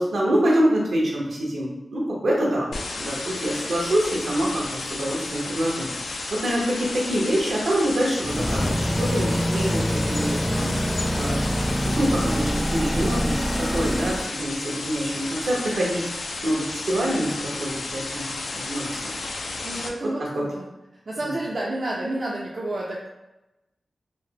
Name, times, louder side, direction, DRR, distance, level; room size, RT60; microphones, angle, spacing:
voice 1, 0.0-2.7 3.0-11.4 11.8-16.1 16.4-18.3 18.5-19.1 20.3-20.5 21.2-21.3, right 1 dB, 85° right, -3 dB, 0.8 m, -26 dB
sound 1, 2.7-19.9, left 3 dB, 80° left, 0.3 m, -33 dB
sound 2, 8.2-14.3, equal, 10° left, 0.5 m, -25 dB
voice 2, 19.6-20.7 21.1-23.1, right 1 dB, 60° right, -4 dB, 0.4 m, -30 dB
3.2 x 2.0 x 2.8 m, 0.96 s
cardioid pair, 60°, 0 cm